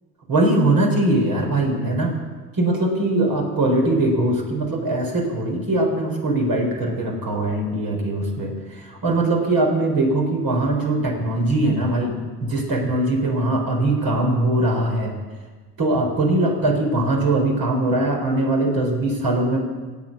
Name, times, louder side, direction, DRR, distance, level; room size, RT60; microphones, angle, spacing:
voice 1, 0.3-2.1 2.6-15.1 15.8-19.6, right 2 dB, 50° right, 0 dB, 4.2 m, -21 dB
15.5 x 8.3 x 8.3 m, 1.4 s
figure-of-eight pair, 55°, 45 cm